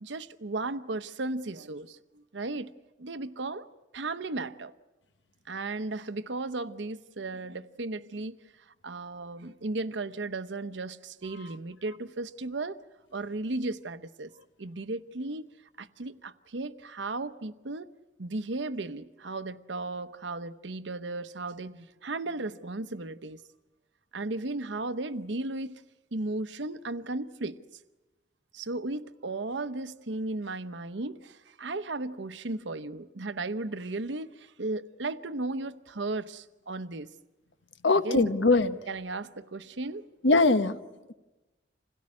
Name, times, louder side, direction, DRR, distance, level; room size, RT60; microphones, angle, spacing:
voice 1, 0.0-2.7 3.0-3.6 3.9-4.7 5.5-12.8 13.1-14.3 14.6-15.5 15.8-17.9 18.2-23.4 24.1-25.8 26.1-27.6 28.5-37.1 38.0-38.3 38.9-40.1, right 2 dB, 80° right, 0.9 m, -35 dB
voice 2, 37.8-38.8 40.2-40.8, left 3 dB, 85° left, 1.1 m, -22 dB
27.0 x 17.0 x 9.7 m
head